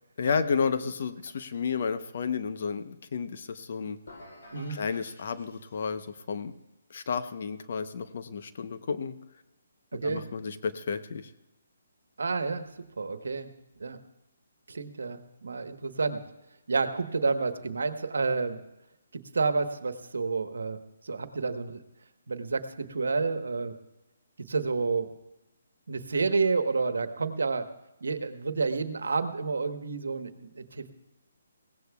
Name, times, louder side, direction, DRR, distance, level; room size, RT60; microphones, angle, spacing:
voice 1, 0.2-4.0 4.7-6.5 6.9-9.1 9.9-11.3, left 5 dB, 60° left, 10 dB, 0.9 m, -32 dB
sound 1, 4.1-6.2, left 1 dB, 75° left, 6.4 m, -51 dB
voice 2, 9.9-10.3 12.2-12.7 13.0-13.5 13.8-14.0 14.7-16.2 16.7-18.6 19.1-20.8 21.0-21.8 22.3-23.7 24.5-25.1 25.9-27.7 28.0-30.9, right 4 dB, 80° right, 9 dB, 1.2 m, -29 dB
21.0 x 17.0 x 2.4 m, 0.94 s
hypercardioid pair, 150°, 0 cm